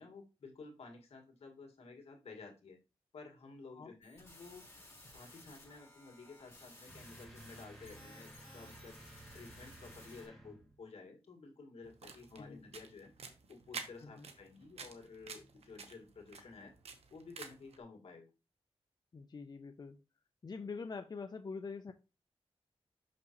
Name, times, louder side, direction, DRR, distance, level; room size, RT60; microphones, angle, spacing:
voice 1, 0.0-2.8 3.1-16.7 17.1-18.3, left 4 dB, 80° left, 3 dB, 1.9 m, -53 dB
sound 1, 4.0-10.3, left 1 dB, 25° left, 4.3 m, -57 dB
sound 2, 6.9-10.8, right 1 dB, ahead, 2.3 m, -55 dB
sound 3, 11.8-17.8, right 5 dB, 85° right, 1.0 m, -50 dB
voice 2, 19.1-20.0 20.4-21.9, left 4 dB, 40° left, 7 dB, 0.6 m, -45 dB
6.2 x 5.9 x 3.0 m, 0.29 s
cardioid pair, 70°, 10 cm